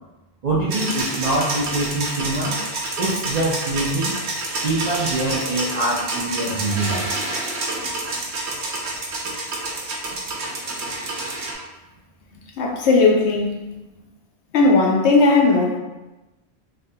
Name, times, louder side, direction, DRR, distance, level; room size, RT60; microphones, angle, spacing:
voice 1, 0.4-2.6 3.0-4.1 4.6-7.3, right 2 dB, 55° right, -5 dB, 0.5 m, -24 dB
sound 1, 0.7-11.5, right 2 dB, 90° right, 0.9 m, -28 dB
voice 2, 12.6-13.6 14.5-15.8, left 3 dB, 90° left, 0 dB, 0.9 m, -17 dB
3.3 x 2.2 x 2.7 m, 1.0 s
omnidirectional pair, 1.1 m